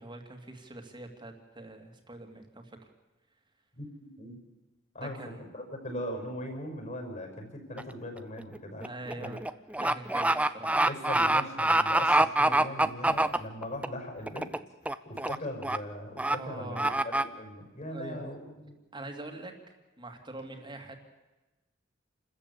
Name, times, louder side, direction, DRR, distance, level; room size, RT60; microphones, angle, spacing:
voice 1, 0.0-2.9 5.0-5.5 8.7-9.4 9.8-10.8 16.4-16.9 17.9-18.4 18.9-19.5 20.0-21.0, right 2 dB, 25° right, 4 dB, 2.7 m, -43 dB
voice 2, 5.5-8.9 9.2-9.3 10.8-14.5 15.1-18.4 18.6-18.7, left 1 dB, 40° left, 3 dB, 6.1 m, -39 dB
sound 1, 7.8-8.0 8.4-13.9 14.3-14.6 14.9-15.4 15.6-15.8 16.2-16.4 16.8-17.2, right 1 dB, 5° right, 0.6 m, -25 dB
28.0 x 14.0 x 8.6 m, 1.1 s
head